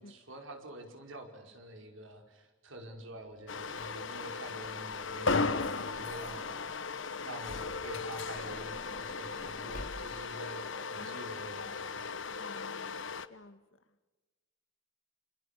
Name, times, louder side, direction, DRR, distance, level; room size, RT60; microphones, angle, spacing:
voice 1, 0.0-6.9 7.2-12.3, right 1 dB, 80° right, 4 dB, 5.3 m, -47 dB
sound 1, 3.5-13.3, left 4 dB, 70° left, 1.2 m, -36 dB
Truck / Door, 3.7-6.9 7.9-10.4 11.1-11.2 11.4-11.6, left 1 dB, 45° left, 2.7 m, -52 dB
voice 2, 10.9-11.3 12.3-13.6 13.9-14.0, left 2 dB, 90° left, 9 dB, 2.3 m, -52 dB
29.0 x 28.5 x 6.9 m, 1.2 s
head